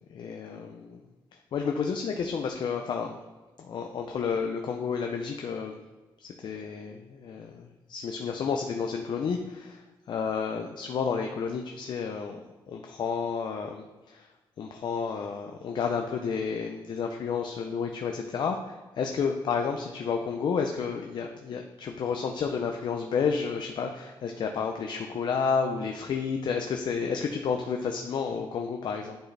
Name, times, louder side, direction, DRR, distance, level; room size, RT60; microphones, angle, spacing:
voice 1, 0.1-1.0 1.5-3.2 3.6-5.8 6.4-9.8 10.1-12.4 12.7-14.3 14.6-29.2, left 6 dB, 60° left, 3 dB, 0.5 m, -31 dB
10.0 x 4.0 x 3.3 m, 1.2 s
cardioid pair, 120°, 9 cm